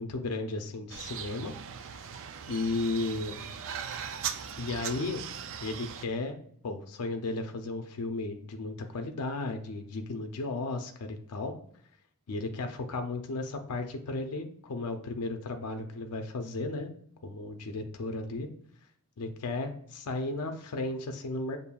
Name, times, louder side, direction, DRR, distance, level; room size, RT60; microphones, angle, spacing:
voice 1, 0.0-1.5 2.5-3.4 4.6-5.2 5.6-6.4 6.6-11.5 12.3-16.9 17.2-18.5 19.2-21.6, left 2 dB, 85° left, 5 dB, 0.5 m, -34 dB
sound 1, 0.9-6.0, right 8 dB, 60° right, 0.4 m, -39 dB
6.8 x 2.6 x 2.2 m, 0.63 s
head